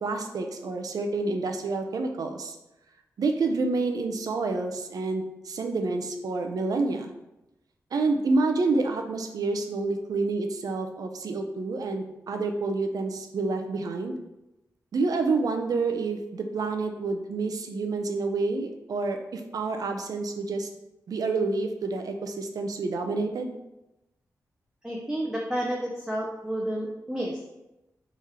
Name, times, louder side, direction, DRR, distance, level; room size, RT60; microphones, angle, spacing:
voice 1, 0.0-2.6 3.2-7.1 7.9-14.2 14.9-20.7 21.1-23.6, right 3 dB, 80° right, 5 dB, 0.5 m, -28 dB
voice 2, 24.8-27.6, right 1 dB, 10° right, -2 dB, 0.6 m, -31 dB
3.8 x 3.1 x 4.2 m, 0.95 s
cardioid pair, 75°, 6 cm